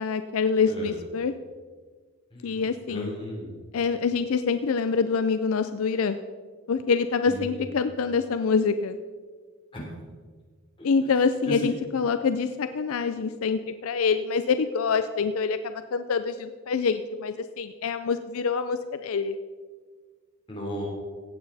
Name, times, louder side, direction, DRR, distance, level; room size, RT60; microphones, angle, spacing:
voice 1, 0.0-1.3 2.4-3.1 3.7-6.2 6.7-9.0 10.8-19.4, left 5 dB, 70° left, 10 dB, 0.4 m, -26 dB
voice 2, 2.3-3.5 7.2-7.6 9.7-9.8 10.8-10.9 11.5-11.7 20.5-20.8, equal, 20° left, -4 dB, 3.4 m, -35 dB
16.0 x 8.7 x 4.1 m, 1.5 s
head